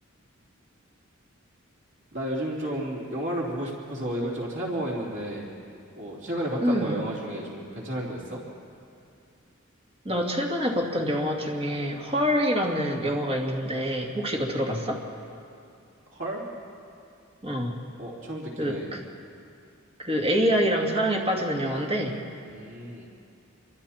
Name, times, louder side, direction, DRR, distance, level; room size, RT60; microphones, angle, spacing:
voice 1, 2.1-5.5 5.9-8.4 16.1-16.4 18.0-18.9 22.5-23.1, right 1 dB, 60° right, -3 dB, 3.2 m, -32 dB
voice 2, 6.6-7.0 10.0-15.0 17.4-17.8 18.6-19.0 20.0-22.2, equal, 25° right, -1 dB, 2.4 m, -26 dB
27.5 x 24.0 x 4.4 m, 2.5 s
head